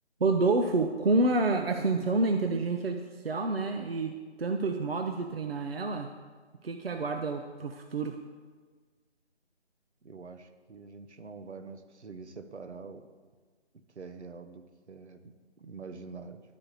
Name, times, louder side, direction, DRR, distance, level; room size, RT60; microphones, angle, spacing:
voice 1, 0.2-6.1 6.6-8.2, right 3 dB, 60° right, 5 dB, 0.6 m, -28 dB
voice 2, 10.0-13.1 13.9-16.4, right 4 dB, 75° right, 9 dB, 1.0 m, -45 dB
11.5 x 4.1 x 6.7 m, 1.5 s
figure-of-eight pair, 180°, 34 cm